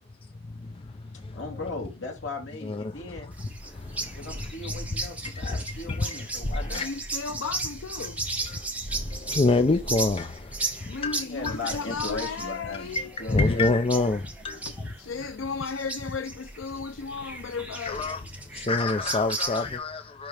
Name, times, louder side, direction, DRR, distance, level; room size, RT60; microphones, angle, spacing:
voice 1, 0.6-0.9 1.2-1.4 2.6-2.9 3.7-4.7 5.3-6.1 6.4-6.9 8.5-11.1 11.5-11.6 12.7-14.6 17.9-18.2 18.5-20.3, left 3 dB, 30° left, 0.5 m, -27 dB
voice 2, 1.3-3.3 4.2-6.9 11.2-13.7, left 3 dB, 70° left, 2.8 m, -37 dB
sound 1, 3.3-19.8, right 2 dB, 10° right, 1.4 m, -35 dB
voice 3, 6.7-8.2 10.9-13.1 14.7-18.1, left 5 dB, 90° left, 0.5 m, -35 dB
10.5 x 3.7 x 3.3 m
head